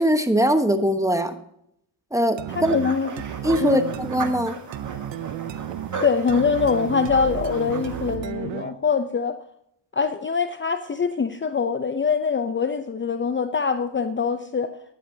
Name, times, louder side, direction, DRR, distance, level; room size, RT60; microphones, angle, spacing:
voice 1, 0.0-1.4 2.1-2.7 3.4-4.5, equal, 5° right, 7 dB, 1.2 m, -21 dB
sound 1, 2.4-8.9, right 10 dB, 75° right, 0.8 m, -33 dB
voice 2, 2.5-3.2 3.6-3.8 6.0-9.4 9.9-14.7, left 5 dB, 25° left, 9 dB, 0.6 m, -23 dB
sound 2, 2.5-8.2, right 3 dB, 40° right, 2.3 m, -36 dB
11.5 x 10.0 x 2.8 m, 0.74 s
cardioid pair, 70°, 44 cm